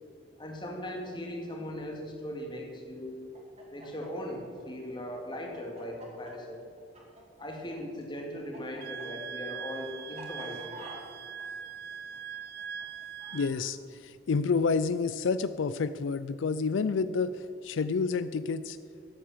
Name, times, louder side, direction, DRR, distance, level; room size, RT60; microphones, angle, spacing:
voice 1, 0.4-3.2 3.7-6.6 7.4-10.8, left 1 dB, 25° left, 1 dB, 2.2 m, -39 dB
Chicken rooster, 3.3-7.8 8.0-13.6, right 2 dB, 35° right, 2.6 m, -49 dB
Wind instrument woodwind instrument, 8.8-13.5, right 7 dB, 55° right, 0.4 m, -41 dB
voice 2, 13.3-18.8, left 4 dB, 85° left, 13 dB, 0.4 m, -29 dB
13.0 x 8.6 x 7.3 m, 2.4 s
head